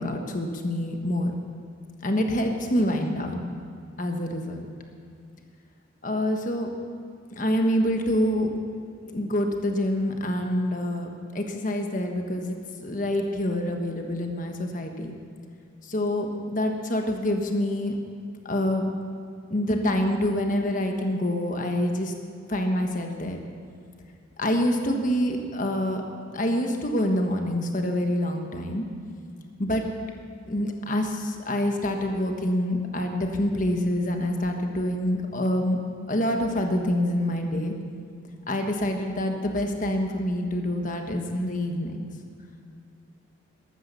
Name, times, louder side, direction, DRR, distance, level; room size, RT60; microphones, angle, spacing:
voice 1, 0.0-1.3 2.0-3.4 4.0-4.7 6.0-6.7 7.4-8.5 9.1-15.1 15.8-18.0 18.4-18.9 19.5-22.1 22.5-23.4 24.4-26.0 26.3-28.8 29.6-29.8 30.5-35.8 36.1-37.7 38.5-42.0, left 1 dB, 40° left, 4 dB, 1.4 m, -26 dB
13.0 x 13.0 x 6.9 m, 2.3 s
head